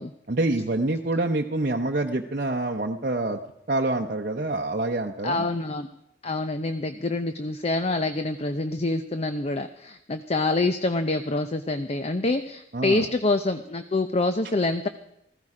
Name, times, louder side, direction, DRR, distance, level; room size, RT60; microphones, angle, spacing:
voice 1, 0.3-3.4 3.7-5.5 12.7-13.1, right 2 dB, 50° right, 1 dB, 0.8 m, -26 dB
voice 2, 5.2-5.9 6.2-14.9, left 2 dB, 35° left, 9 dB, 0.6 m, -26 dB
15.0 x 15.0 x 4.9 m, 0.82 s
head